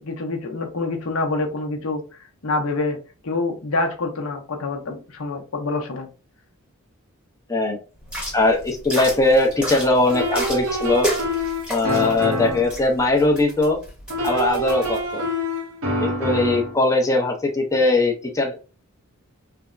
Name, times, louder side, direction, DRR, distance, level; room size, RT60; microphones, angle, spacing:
voice 1, 0.0-2.0 2.4-3.0 3.2-6.1, left 2 dB, 65° left, 4 dB, 0.6 m, -26 dB
sound 1, 8.0-15.0, equal, 5° right, 0.9 m, -32 dB
voice 2, 8.3-11.1 11.7-13.8 14.2-15.2 16.0-18.5, left 2 dB, 15° left, 1 dB, 0.5 m, -20 dB
sound 2, 10.1-12.8 14.1-16.7, equal, 85° right, 0.9 m, -26 dB
3.3 x 2.0 x 2.4 m, 0.33 s
head